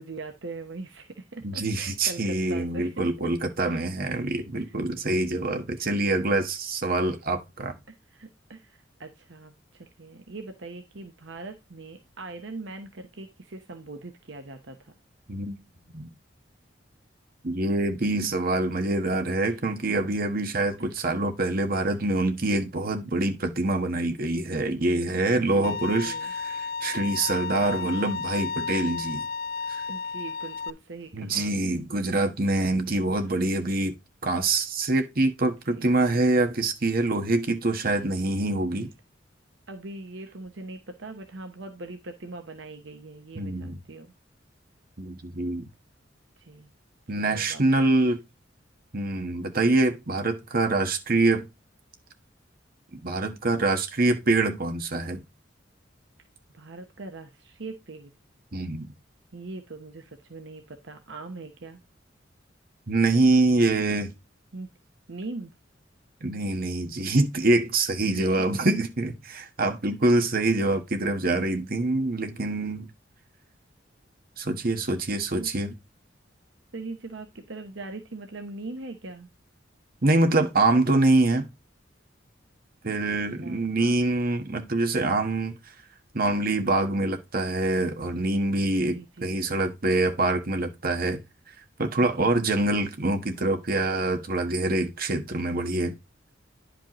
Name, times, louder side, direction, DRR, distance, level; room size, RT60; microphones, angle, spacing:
voice 1, 0.0-3.3 3.6-3.8 4.6-4.8 5.8-5.9 8.1-14.9 19.5-19.6 20.8-21.0 25.3-26.3 27.5-28.0 29.9-31.9 35.4-36.3 38.7-38.9 39.7-44.1 46.4-46.7 47.1-47.9 56.5-58.1 59.3-61.8 64.5-64.7 65.1-65.5 68.1-68.3 75.3-75.5 76.7-79.3 83.4-84.0 88.8-89.4 92.0-92.4, right 3 dB, 70° right, 0.9 m, -41 dB
voice 2, 1.4-7.8 15.3-15.5 15.9-16.1 17.4-29.2 29.7-29.9 31.1-33.9 34.2-38.9 43.3-43.8 45.0-45.7 47.1-48.2 48.9-51.4 52.9-55.2 58.5-58.9 62.9-64.1 66.2-72.9 74.4-75.7 80.0-81.5 82.8-85.5 86.1-91.2 91.8-96.0, right 2 dB, 50° right, 1.3 m, -25 dB
Bowed string instrument, 25.6-30.7, left 5 dB, 55° left, 0.4 m, -32 dB
10.5 x 5.2 x 2.9 m
head